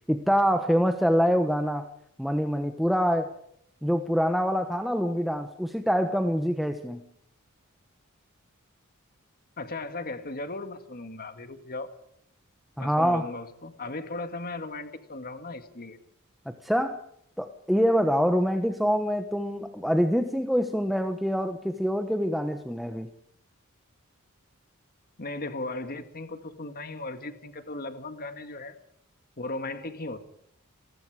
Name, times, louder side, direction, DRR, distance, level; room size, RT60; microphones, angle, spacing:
voice 1, 0.1-1.9 2.2-3.3 3.8-7.0 12.8-13.3 16.6-17.0 17.4-23.1, equal, ahead, 6 dB, 1.2 m, -25 dB
voice 2, 9.6-11.9 12.8-16.0 25.2-28.8 29.4-30.2, left 2 dB, 45° left, 9 dB, 2.0 m, -37 dB
29.0 x 19.5 x 4.9 m, 0.69 s
head